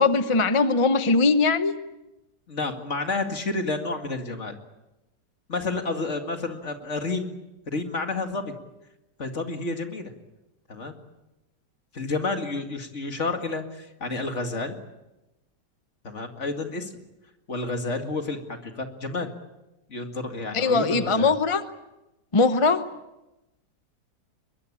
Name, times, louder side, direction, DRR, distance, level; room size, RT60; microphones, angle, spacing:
voice 1, 0.0-1.7 20.5-21.6 22.3-22.8, left 3 dB, 25° left, 10 dB, 0.7 m, -20 dB
voice 2, 2.5-4.5 5.5-7.3 7.7-8.5 9.2-10.1 10.7-10.9 11.9-14.8 16.0-16.9 17.5-19.3 19.9-21.3, left 3 dB, 40° left, 5 dB, 2.4 m, -30 dB
23.0 x 21.5 x 8.6 m, 0.98 s
omnidirectional pair, 1.9 m